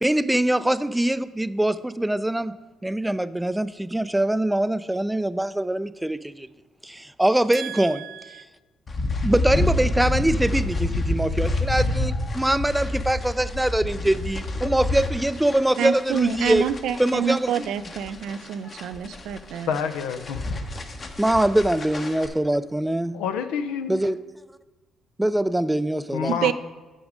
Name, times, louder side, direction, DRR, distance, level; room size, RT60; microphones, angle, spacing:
voice 1, 0.0-2.5 2.8-6.5 6.8-8.0 9.2-16.7 17.0-17.7 21.2-23.2 23.9-24.2 25.2-26.3, right 1 dB, 10° right, 15 dB, 0.3 m, -23 dB
voice 2, 7.5-8.4 15.8-19.7 26.3-26.5, right 9 dB, 80° right, 13 dB, 0.4 m, -28 dB
sound 1, 8.9-22.3, left 2 dB, 40° left, 1.0 m, -28 dB
voice 3, 19.7-20.4 23.1-24.0 26.1-26.5, left 7 dB, 90° left, 8 dB, 0.5 m, -28 dB
6.3 x 6.1 x 5.1 m, 1.2 s
supercardioid pair, 75°, 0 cm